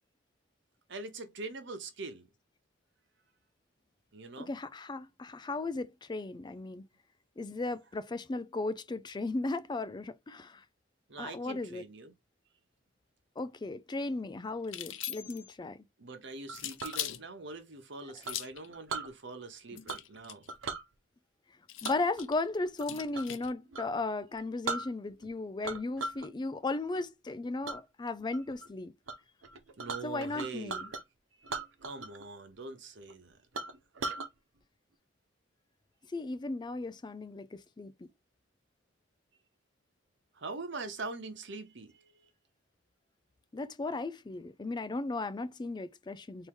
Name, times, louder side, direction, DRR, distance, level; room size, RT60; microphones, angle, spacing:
voice 1, 0.9-2.3 4.1-4.5 11.1-12.1 16.0-20.5 29.8-30.8 31.4-31.5 31.8-33.4 40.3-42.1, right 3 dB, 65° right, 1.1 m, -43 dB
voice 2, 4.4-6.8 7.4-10.6 11.2-11.8 13.4-15.8 21.8-28.9 30.0-30.9 36.1-38.1 43.5-46.5, left 2 dB, 25° left, 0.4 m, -36 dB
sound 1, 14.6-15.5 16.5-17.2 18.2-18.7 19.7-20.5 21.7-23.5, left 12 dB, 75° left, 0.6 m, -40 dB
Chink clink, 16.5-17.0 18.2-19.1 19.9-20.2 20.5-20.8 21.8-23.4 23.7-23.9 24.3-24.4 24.6-25.3 25.6-26.3 26.7-27.0 27.6-27.8 28.3-28.7 29.1-29.2 29.4-31.0 31.4-32.2 32.5-32.6 33.1-33.2 33.5-34.3, right 3 dB, 90° right, 0.8 m, -39 dB
4.4 x 2.8 x 3.6 m
head